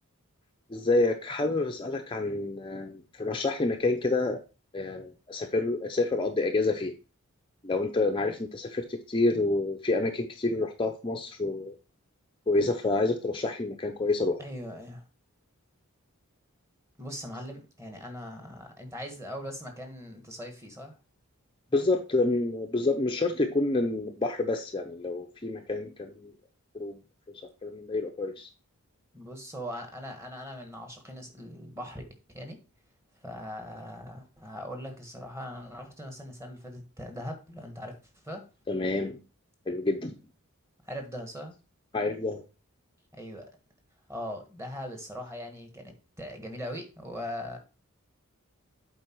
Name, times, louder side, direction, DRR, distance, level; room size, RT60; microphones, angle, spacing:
voice 1, 0.7-4.4 4.7-6.9 7.6-11.7 12.5-14.4 21.7-26.3 26.7-27.0 27.6-28.5 38.7-39.2 39.7-40.2 41.9-42.4, left 2 dB, 20° left, 4 dB, 0.6 m, -28 dB
voice 2, 14.4-15.0 17.0-20.9 29.1-32.0 32.3-32.6 33.2-38.0 38.2-38.4 40.8-41.5 43.1-43.5 44.1-47.6, equal, 10° right, 4 dB, 1.5 m, -40 dB
7.8 x 4.6 x 4.5 m, 0.33 s
head